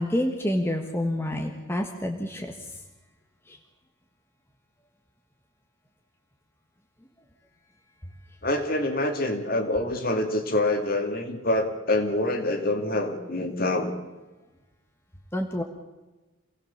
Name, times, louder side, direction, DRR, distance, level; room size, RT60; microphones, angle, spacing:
voice 1, 0.0-2.7 3.5-3.6 15.3-15.6, left 1 dB, 10° left, 3 dB, 1.5 m, -28 dB
voice 2, 8.4-13.9, left 1 dB, 45° left, 5 dB, 2.5 m, -26 dB
27.5 x 18.0 x 7.3 m, 1.1 s
head